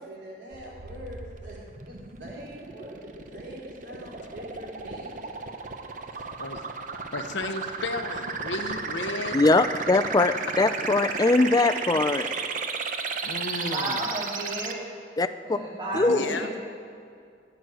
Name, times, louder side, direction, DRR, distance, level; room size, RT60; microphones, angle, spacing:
voice 1, 0.0-3.0 3.3-5.3, equal, 70° right, -5 dB, 3.9 m, -43 dB
sound 1, 0.5-14.7, right 5 dB, 45° right, 0.8 m, -34 dB
voice 2, 7.1-9.4 11.9-12.0 13.2-14.0 16.0-16.5, left 3 dB, 85° left, 7 dB, 0.9 m, -33 dB
voice 3, 9.3-12.3 15.2-15.6 15.9-16.3, left 2 dB, 20° left, 12 dB, 0.4 m, -22 dB
voice 4, 13.6-14.8 15.4-16.6, right 1 dB, 25° right, -8 dB, 2.5 m, -32 dB
15.0 x 6.2 x 9.0 m, 2.3 s
head